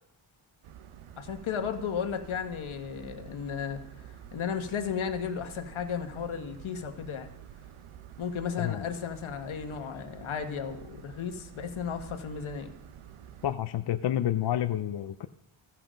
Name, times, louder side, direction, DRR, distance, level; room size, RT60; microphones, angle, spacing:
sound 1, 0.6-13.6, right 9 dB, 85° right, 0.7 m, -49 dB
voice 1, 1.2-7.3 8.2-12.7, left 7 dB, 75° left, 6 dB, 1.3 m, -34 dB
voice 2, 13.4-15.3, left 12 dB, 55° left, 9 dB, 0.5 m, -29 dB
15.5 x 5.8 x 5.1 m, 0.81 s
wide cardioid pair, 125°, 49 cm